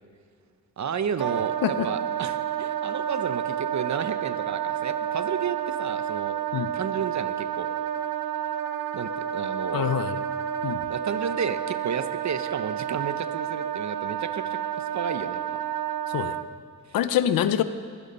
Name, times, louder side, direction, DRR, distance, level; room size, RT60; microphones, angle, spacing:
voice 1, 0.8-6.3 6.7-7.7 8.9-10.0 10.9-15.4, right 7 dB, 55° right, 11 dB, 1.0 m, -32 dB
Wind instrument woodwind instrument, 1.2-16.5, right 10 dB, 75° right, 0.8 m, -30 dB
voice 2, 9.7-10.2 10.6-10.8 16.1-16.4 16.9-17.6, left 10 dB, 85° left, 12 dB, 0.8 m, -25 dB
20.0 x 12.5 x 5.5 m, 2.2 s
cardioid pair, 65°, 34 cm